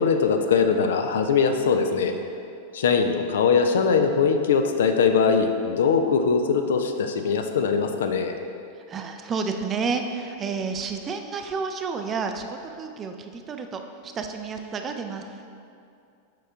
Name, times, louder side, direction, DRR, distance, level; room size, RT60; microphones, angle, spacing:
voice 1, 0.0-2.1 2.7-8.3, left 5 dB, 60° left, 6 dB, 0.4 m, -21 dB
voice 2, 8.9-15.2, right 5 dB, 25° right, 5 dB, 0.4 m, -30 dB
7.4 x 5.3 x 2.4 m, 2.5 s
figure-of-eight pair, 90°, 0 cm